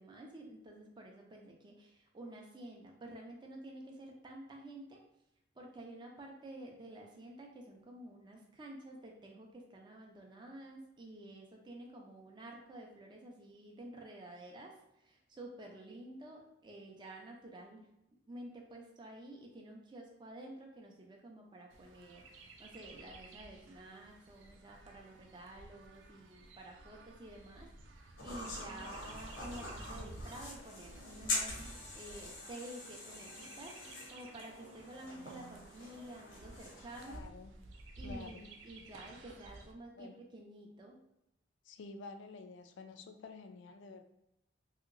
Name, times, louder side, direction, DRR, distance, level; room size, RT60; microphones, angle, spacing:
voice 1, 0.0-5.1 5.6-17.9 18.3-37.3 38.0-41.0, right 1 dB, 25° right, 0 dB, 0.4 m, -51 dB
Chirp tweet, 21.7-39.7, right 2 dB, 85° right, 0.4 m, -53 dB
sound 1, 28.2-37.2, left 2 dB, 90° left, 0.8 m, -44 dB
voice 2, 37.0-37.5 38.0-38.5 40.0-40.2 41.6-44.0, left 4 dB, 75° left, 7 dB, 0.3 m, -50 dB
2.9 x 2.8 x 2.5 m, 0.86 s
head